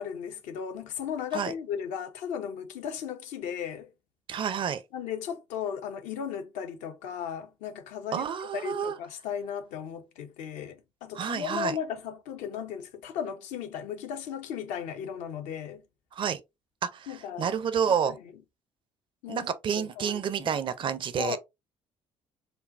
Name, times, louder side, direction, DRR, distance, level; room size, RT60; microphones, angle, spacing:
voice 1, 0.0-3.9 4.9-15.8 17.1-17.5 17.9-18.2 19.2-19.5 19.7-20.6 21.2-21.4, left 8 dB, 65° left, 0.7 m, -36 dB
voice 2, 4.3-4.8 8.1-8.9 11.1-11.7 16.1-16.4 16.8-18.2 19.3-21.4, right 7 dB, 40° right, 0.5 m, -29 dB
5.2 x 2.2 x 2.4 m
figure-of-eight pair, 50°, 13 cm